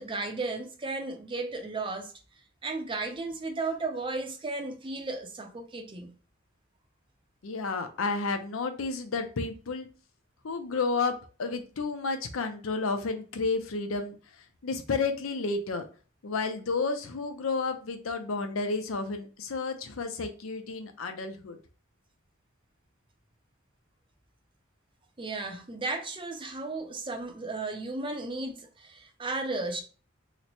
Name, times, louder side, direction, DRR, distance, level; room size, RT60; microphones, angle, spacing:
voice 1, 0.0-2.1 2.6-6.1 25.2-29.8, right 3 dB, 25° right, 0.5 m, -34 dB
voice 2, 7.4-9.9 10.4-14.2 14.6-15.8 16.2-21.6, left 4 dB, 85° left, 0.6 m, -31 dB
3.0 x 2.1 x 4.0 m
head